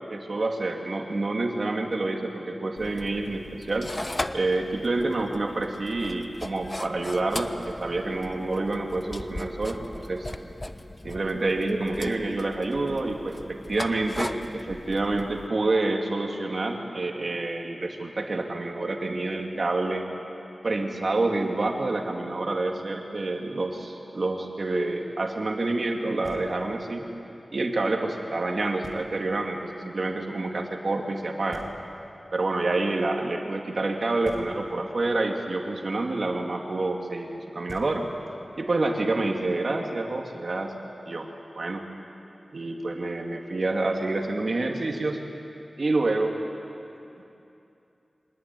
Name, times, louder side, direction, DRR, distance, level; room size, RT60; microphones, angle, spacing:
voice 1, 0.1-3.9 4.3-10.3 11.0-20.1 20.6-27.0 27.5-31.7 32.3-38.0 38.5-40.7 41.1-41.3 41.6-41.8 42.5-45.2 45.8-46.3 47.2-47.3, right 2 dB, 65° right, 2 dB, 2.4 m, -28 dB
sound 1, 2.8-15.5, left 1 dB, 30° left, 0.9 m, -38 dB
Knock, 26.2-26.9 28.8-29.5 31.5-32.3 34.2-35.0 37.3-37.4 37.7-38.5, equal, 5° left, 3.1 m, -47 dB
24.5 x 19.0 x 9.3 m, 2.8 s
wide cardioid pair, 60°, 0 cm